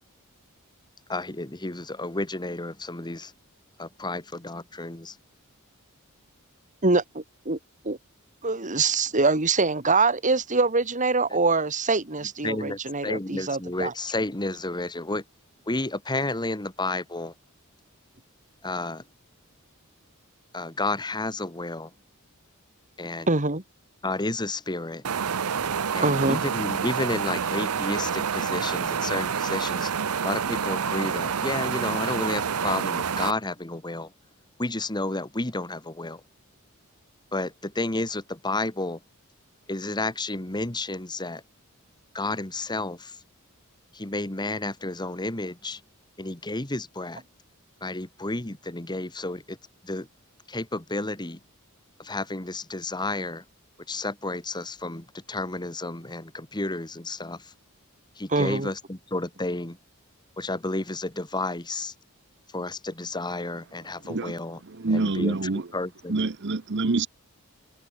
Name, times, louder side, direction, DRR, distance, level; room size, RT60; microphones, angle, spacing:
voice 1, 1.1-3.3 3.8-5.1 12.4-15.2 15.7-17.3 18.6-19.0 20.5-21.9 23.0-23.3 24.0-25.0 25.9-29.9 30.2-34.1 34.6-36.2 37.3-39.0 39.7-41.4 42.1-43.1 43.9-45.8 46.2-47.2 47.8-49.6 49.8-50.1 50.5-51.4 52.0-53.4 53.9-57.4 58.2-59.8 60.4-61.9 62.5-64.6 64.9-65.4 65.7-66.2, left 2 dB, 20° left, 1.9 m, -31 dB
voice 2, 6.8-7.6 7.8-8.0 8.4-13.9 23.3-23.6 26.0-26.4 58.3-58.7, right 3 dB, 35° right, 2.9 m, -24 dB
sound 1, 25.0-33.3, right 6 dB, 85° right, 0.7 m, -28 dB
voice 3, 64.6-65.7 66.1-67.1, right 3 dB, 55° right, 0.9 m, -26 dB
head